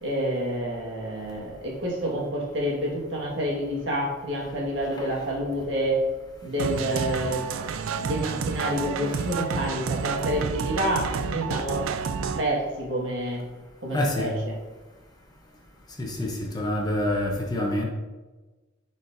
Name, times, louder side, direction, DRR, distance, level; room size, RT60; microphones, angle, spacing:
voice 1, 0.0-6.0 6.4-7.5 7.9-13.4 13.8-14.5, equal, 60° right, -4 dB, 1.7 m, -28 dB
sound 1, 6.6-12.4, right 6 dB, 90° right, 0.4 m, -30 dB
voice 2, 13.9-14.4 16.0-17.8, left 1 dB, 20° left, 0 dB, 0.8 m, -27 dB
10.5 x 4.2 x 2.7 m, 1.2 s
head